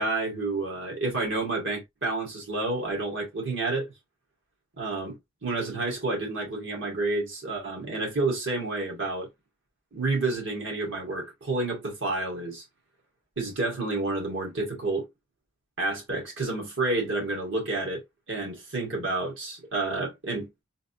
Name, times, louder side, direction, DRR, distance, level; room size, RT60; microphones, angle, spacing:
voice 1, 0.0-3.9 4.8-5.2 5.4-9.3 9.9-12.6 13.4-15.1 15.8-20.6, right 2 dB, 65° right, 1.8 m, -29 dB
3.9 x 2.9 x 2.7 m
head